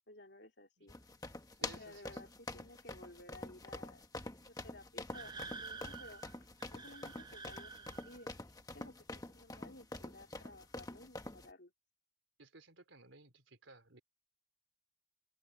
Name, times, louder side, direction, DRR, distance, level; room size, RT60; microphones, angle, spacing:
voice 1, 0.1-0.9 1.6-4.1 4.4-6.2 6.7-8.3 8.7-8.9 9.3-11.7, left 2 dB, 60° left, 3.4 m, -56 dB
sound 1, 0.9-11.5, left 2 dB, 20° left, 1.2 m, -46 dB
voice 2, 1.5-2.2 12.4-14.0, right 3 dB, 80° right, 3.5 m, -58 dB
sound 2, 5.1-8.3, right 4 dB, 20° right, 0.6 m, -49 dB
open air
head